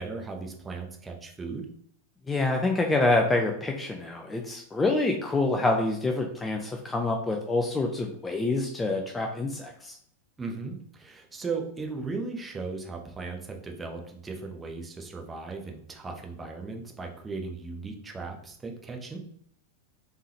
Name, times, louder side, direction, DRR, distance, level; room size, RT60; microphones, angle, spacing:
voice 1, 0.0-1.7 10.4-19.2, right 4 dB, 15° right, 2 dB, 0.8 m, -37 dB
voice 2, 2.3-10.0, left 2 dB, 10° left, 2 dB, 0.5 m, -26 dB
3.6 x 3.3 x 2.8 m, 0.66 s
figure-of-eight pair, 90°, 0 cm